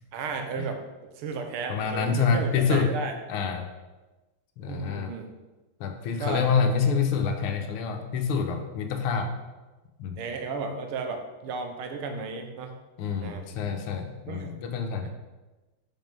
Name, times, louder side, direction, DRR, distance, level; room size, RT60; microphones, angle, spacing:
voice 1, 0.1-3.1 4.7-5.3 6.2-6.5 10.2-12.7 13.2-13.5 14.3-14.6 15.0-15.1, right 4 dB, 85° right, 5 dB, 1.7 m, -34 dB
voice 2, 1.7-2.9 3.3-3.7 4.6-5.1 5.8-9.3 10.0-10.2 13.0-15.1, left 5 dB, 90° left, 6 dB, 1.7 m, -27 dB
5.5 x 5.5 x 5.2 m, 1.1 s
omnidirectional pair, 2.4 m